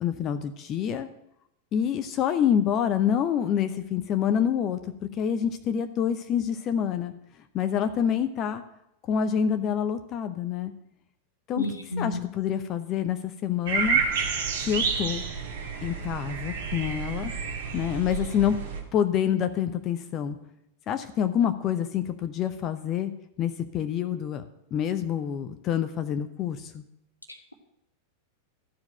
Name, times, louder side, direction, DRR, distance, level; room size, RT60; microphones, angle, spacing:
voice 1, 0.0-1.1 1.7-7.1 7.5-8.6 9.1-10.7 11.5-11.7 12.0-14.0 14.6-15.2 15.8-17.3 17.7-18.6 18.9-20.4 20.9-23.1 23.4-24.4 24.7-26.8, left 9 dB, 35° left, 9 dB, 0.7 m, -27 dB
voice 2, 11.6-12.2 27.3-27.5, left 2 dB, 85° left, 6 dB, 1.2 m, -32 dB
sound 1, 13.7-18.8, right 5 dB, 60° right, 1.8 m, -29 dB
13.0 x 4.8 x 7.7 m, 0.81 s
figure-of-eight pair, 90°, 0 cm